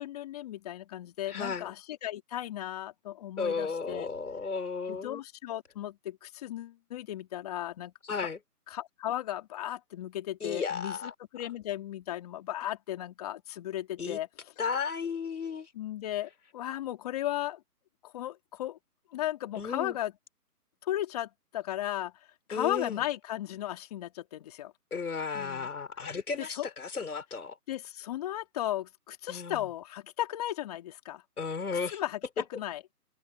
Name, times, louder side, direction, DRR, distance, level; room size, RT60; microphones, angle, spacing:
voice 1, 0.0-4.1 4.9-8.3 8.7-14.3 15.7-17.6 18.0-18.8 19.1-20.1 20.8-22.1 22.5-24.7 25.3-25.7 26.4-26.7 27.7-31.2 31.9-32.8, left 13 dB, 25° left, 3.3 m, -36 dB
voice 2, 1.3-1.7 3.4-5.2 8.0-8.4 10.4-11.1 14.0-14.2 14.6-15.7 19.5-20.0 22.5-23.0 24.9-27.6 29.3-29.7 31.4-32.0 32.4-32.5, left 5 dB, 65° left, 4.7 m, -34 dB
hypercardioid pair, 160°, 48 cm